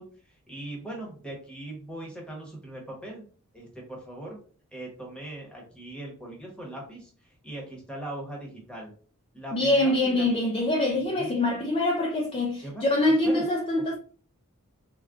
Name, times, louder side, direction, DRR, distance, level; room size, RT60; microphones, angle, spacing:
voice 1, 0.0-3.2 3.5-4.4 4.7-8.9 9.3-10.3 10.9-11.3 12.6-13.4, right 1 dB, 5° left, 0.9 m, -40 dB
voice 2, 9.5-13.9, left 1 dB, 25° left, 0.3 m, -24 dB
3.5 x 2.2 x 2.4 m
head